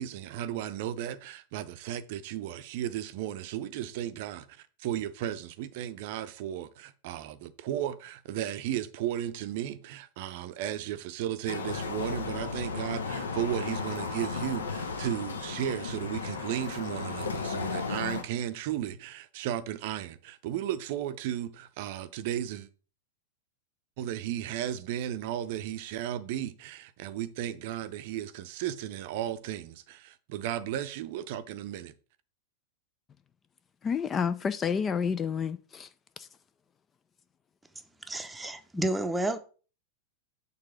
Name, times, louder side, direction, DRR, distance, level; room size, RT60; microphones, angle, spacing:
voice 1, 0.0-22.7 24.0-31.9, right 11 dB, 50° right, 0.6 m, -35 dB
sound 1, 11.5-18.2, left 4 dB, 70° left, 0.9 m, -34 dB
voice 2, 33.8-36.3, left 6 dB, 20° left, 0.3 m, -30 dB
voice 3, 38.0-39.4, right 1 dB, 5° right, 0.8 m, -30 dB
6.6 x 3.4 x 6.0 m
figure-of-eight pair, 90°, 0 cm